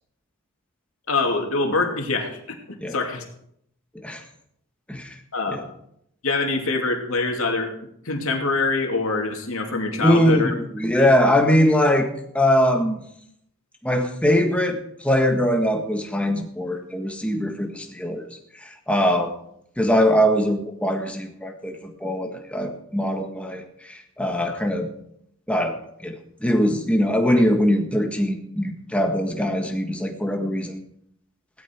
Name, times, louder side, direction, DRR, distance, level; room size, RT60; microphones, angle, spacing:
voice 1, 1.1-3.2 5.3-5.6 6.2-7.7 8.0-10.5 10.9-11.1, left 3 dB, 75° left, 3 dB, 2.7 m, -24 dB
voice 2, 10.0-12.1 12.3-13.0 13.8-18.2 18.6-19.3 19.8-24.9 25.5-25.7 26.0-26.1 26.4-30.8, equal, 5° left, 3 dB, 1.6 m, -22 dB
17.0 x 12.5 x 4.6 m, 0.74 s
head